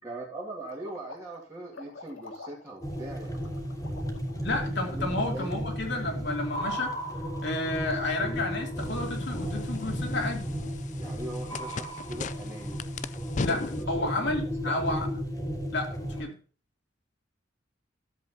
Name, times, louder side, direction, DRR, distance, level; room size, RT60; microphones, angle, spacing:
voice 1, 0.0-3.5 4.9-5.6 11.0-12.8 13.6-14.8, right 2 dB, 15° right, -6 dB, 2.2 m, -41 dB
Bubbling beaker, 0.6-4.5, left 3 dB, 90° left, 2.2 m, -47 dB
sound 1, 2.8-16.2, equal, 20° left, 2.5 m, -34 dB
voice 2, 4.4-6.9 7.4-10.5 13.4-15.1 15.7-16.3, left 2 dB, 65° left, 2 dB, 2.9 m, -31 dB
sound 2, 8.8-13.9, left 3 dB, 40° left, 0.5 m, -37 dB
13.5 x 7.8 x 2.8 m, 0.39 s
head